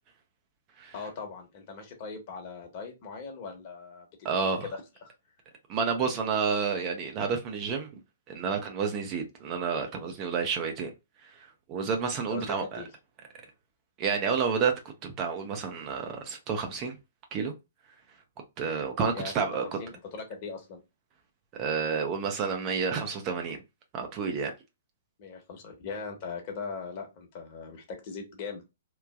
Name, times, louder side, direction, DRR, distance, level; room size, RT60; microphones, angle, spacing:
voice 1, 0.9-4.1 4.4-5.1 12.3-12.9 19.1-19.3 19.8-20.8 25.2-28.6, left 5 dB, 45° left, 1.1 m, -40 dB
voice 2, 4.2-4.6 5.7-7.9 8.3-10.9 11.7-12.8 14.0-14.7 15.0-16.9 17.3-17.5 18.6-19.6 21.6-23.6 23.9-24.5, right 5 dB, 30° right, 0.7 m, -29 dB
3.1 x 2.2 x 2.3 m
figure-of-eight pair, 120°, 0 cm